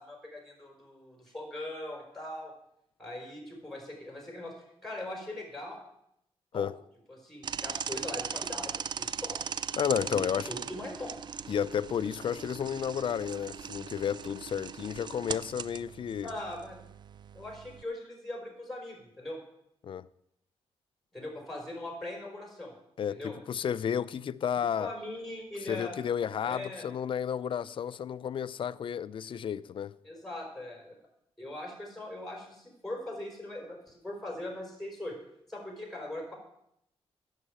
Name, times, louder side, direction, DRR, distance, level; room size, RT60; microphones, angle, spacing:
voice 1, 0.0-2.5 3.0-4.5 4.8-5.8 6.5-6.7 7.1-9.5 10.0-11.1 16.2-16.8 17.3-19.4 21.1-22.7 23.1-23.3 24.8-26.0 26.4-26.9 30.0-30.9 31.4-35.2 35.5-36.3, left 1 dB, ahead, 4.8 m, -40 dB
sound 1, 7.4-17.8, right 7 dB, 45° right, 0.4 m, -39 dB
voice 2, 9.8-10.5 11.5-16.3 19.8-20.1 23.0-24.9 25.7-29.9, left 8 dB, 55° left, 0.5 m, -32 dB
11.0 x 6.6 x 8.7 m
cardioid pair, 100°, 10 cm